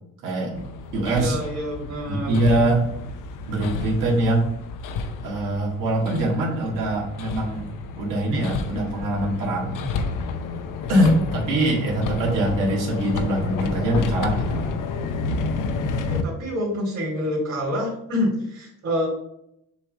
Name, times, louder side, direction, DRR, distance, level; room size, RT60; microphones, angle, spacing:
voice 1, 0.2-0.7 0.9-1.4 2.1-2.9 3.5-4.5 5.2-9.8 10.9-14.7, right 1 dB, 85° right, -3 dB, 2.0 m, -23 dB
Hammer, 0.5-16.2, left 4 dB, 75° left, 0.7 m, -30 dB
voice 2, 1.1-2.4 16.1-19.1, left 1 dB, 50° right, -6 dB, 2.7 m, -27 dB
6.7 x 3.1 x 5.3 m, 0.78 s
cardioid pair, 100°, 32 cm